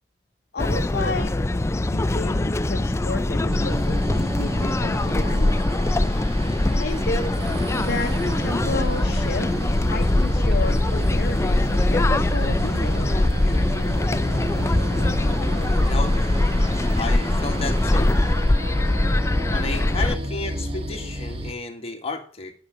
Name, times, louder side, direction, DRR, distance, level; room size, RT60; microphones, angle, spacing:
voice 1, 0.5-1.3 1.9-5.5 6.7-7.3 7.8-9.5 9.9-13.6, left 3 dB, 60° left, 5 dB, 0.8 m, -32 dB
sound 1, 0.6-20.2, left 1 dB, 15° left, 0.4 m, -22 dB
sound 2, 3.5-21.5, right 1 dB, 35° right, 1.3 m, -33 dB
sound 3, 7.4-18.8, right 1 dB, 70° right, 1.1 m, -35 dB
voice 2, 15.9-16.2 17.0-18.1 19.5-22.5, left 3 dB, 35° left, 3 dB, 1.9 m, -32 dB
10.5 x 8.7 x 5.3 m, 0.42 s
head